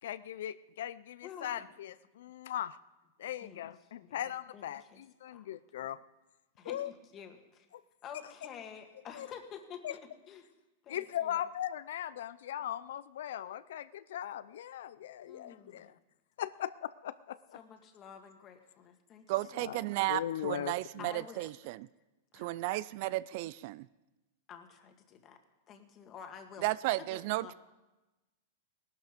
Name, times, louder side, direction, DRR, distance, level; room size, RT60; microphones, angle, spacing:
voice 1, 0.0-2.8 3.2-6.0 6.6-6.9 7.7-7.8 9.1-9.3 9.8-9.9 10.9-15.9 16.4-17.6 19.6-19.8 20.1-21.1, left 11 dB, 75° left, 0.5 m, -39 dB
voice 2, 1.2-1.7 3.4-3.6 4.0-4.2 4.5-5.0 5.3-5.5 6.6-7.7 8.0-10.0 10.3-10.5 10.8-11.4 15.3-15.9 17.5-19.8 21.0-21.5 22.3-22.8 24.5-25.4 25.7-26.7 27.0-27.5, left 8 dB, 25° left, 1.7 m, -50 dB
voice 3, 19.3-21.9 22.3-23.9 26.6-27.5, right 17 dB, 50° right, 0.4 m, -34 dB
18.5 x 12.0 x 5.1 m
supercardioid pair, 155°, 0 cm